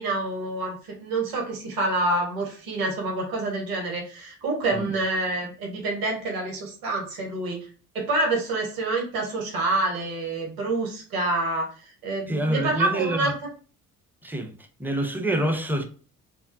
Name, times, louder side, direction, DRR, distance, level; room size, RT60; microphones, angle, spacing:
voice 1, 0.0-7.7 7.9-13.3, right 2 dB, 50° right, 1.3 m, -27 dB
voice 2, 12.3-13.3 14.2-14.5 14.8-15.8, right 1 dB, 5° right, 0.5 m, -26 dB
3.5 x 2.0 x 2.6 m
figure-of-eight pair, 45°, 45 cm